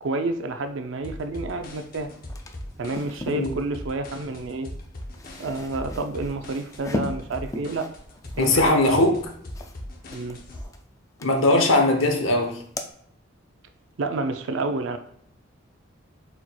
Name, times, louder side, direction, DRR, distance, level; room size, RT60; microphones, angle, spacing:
voice 1, 0.0-2.1 2.8-4.8 5.4-7.9 8.4-9.1 10.1-10.4 14.0-15.0, right 2 dB, 70° right, 7 dB, 0.5 m, -29 dB
sound 1, 1.0-10.6, left 1 dB, 50° left, 0.7 m, -40 dB
sound 2, 1.8-1.9 2.1-3.5 4.8-9.8 10.1-10.8 11.2-12.2 12.4-12.9, left 2 dB, 15° left, 0.3 m, -37 dB
voice 2, 8.4-9.2 11.2-12.6, left 2 dB, 85° left, 4 dB, 0.8 m, -20 dB
4.4 x 4.1 x 2.2 m, 0.65 s
head